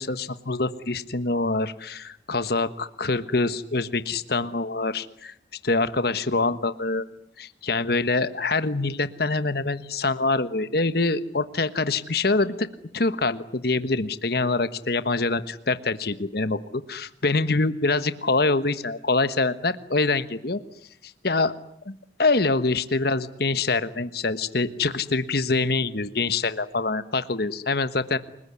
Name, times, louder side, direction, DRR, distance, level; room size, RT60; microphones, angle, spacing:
voice 1, 0.0-5.3 5.6-7.0 7.4-12.7 12.9-20.6 21.0-21.5 21.8-21.9 22.2-28.2, left 3 dB, 55° left, 12 dB, 1.3 m, -25 dB
29.5 x 20.5 x 9.6 m, 0.71 s
head